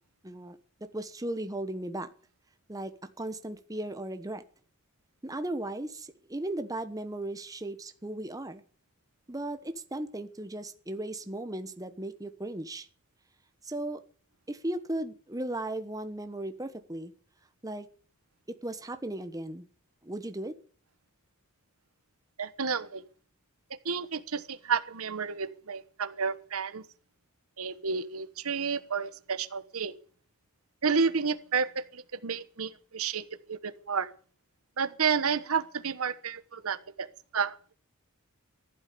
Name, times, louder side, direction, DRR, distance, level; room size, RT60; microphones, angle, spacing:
voice 1, 0.2-2.1 2.7-4.4 5.2-8.6 9.3-12.9 13.6-14.0 14.5-17.1 17.6-17.9 18.5-19.7 20.0-20.5, right 1 dB, 15° right, 1.1 m, -36 dB
voice 2, 22.4-23.0 23.8-26.8 27.6-29.9 30.8-34.1 34.8-37.1 37.3-37.7, right 5 dB, 70° right, 1.1 m, -31 dB
14.5 x 12.0 x 6.8 m
head